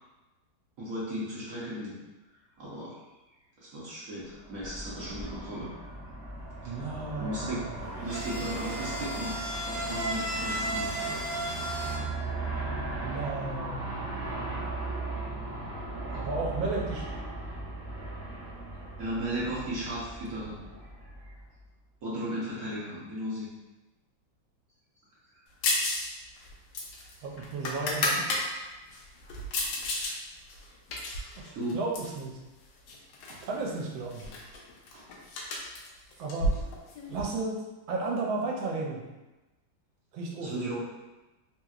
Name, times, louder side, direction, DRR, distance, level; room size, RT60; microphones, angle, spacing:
voice 1, 0.8-1.9 2.6-2.9 3.6-5.7 7.2-7.6 8.0-11.1 16.1-16.2 19.0-20.6 21.0-21.2 22.0-23.5 29.8-30.1 31.5-31.8 34.9-35.0 40.4-40.8, right 1 dB, 55° right, -8 dB, 1.1 m, -36 dB
Aircraft, 4.4-21.6, right 2 dB, 10° right, 1.0 m, -38 dB
voice 2, 6.6-7.8 13.0-14.0 16.1-17.2 27.2-28.2 31.4-32.4 33.3-34.3 36.2-36.5 37.1-39.0 40.1-40.8, right 3 dB, 85° right, -1 dB, 1.4 m, -34 dB
sound 1, 7.7-12.0, right 1 dB, 40° right, 0.8 m, -34 dB
sound 2, 25.6-26.1 26.4-28.4 28.9-30.1 30.5-32.2 32.9-33.5 33.7-33.8 34.1-37.2, left 1 dB, 75° left, 1.3 m, -32 dB
3.4 x 2.9 x 2.4 m, 1.1 s
omnidirectional pair, 2.1 m